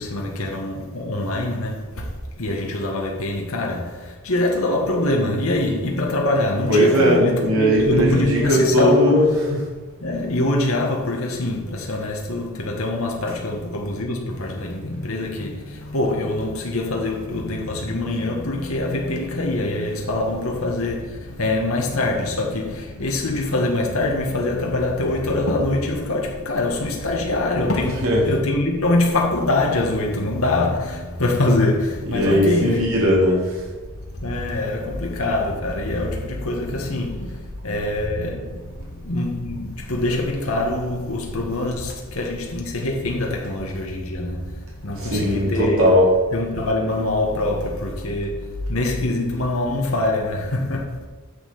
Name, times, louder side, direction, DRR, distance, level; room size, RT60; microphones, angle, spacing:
voice 1, 0.0-9.4 10.0-32.8 34.2-45.9 46.3-51.0, left 2 dB, 75° left, 1.6 m, -24 dB
voice 2, 6.7-9.6 27.9-28.3 32.1-33.5 45.0-46.1, equal, 75° right, 3.9 m, -18 dB
9.9 x 6.8 x 5.6 m
head